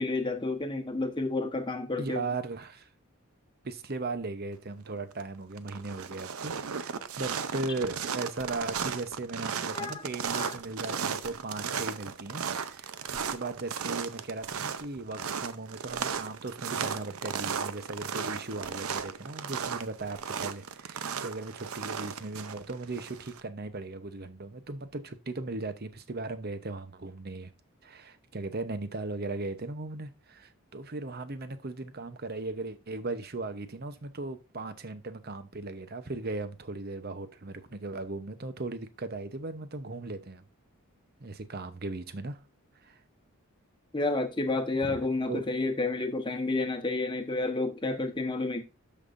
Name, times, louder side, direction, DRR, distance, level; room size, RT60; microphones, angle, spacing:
voice 1, 0.0-2.3 9.7-10.0 10.3-10.5 43.9-48.6, left 2 dB, 20° left, 1.1 m, -30 dB
voice 2, 2.0-2.9 3.6-27.5 27.8-40.4 41.2-42.4 42.8-43.0 44.8-45.0 45.3-45.4, right 3 dB, 45° right, 0.8 m, -37 dB
sound 1, 4.9-5.2 5.5-23.4, right 6 dB, 80° right, 0.7 m, -35 dB
13.0 x 5.5 x 2.6 m
head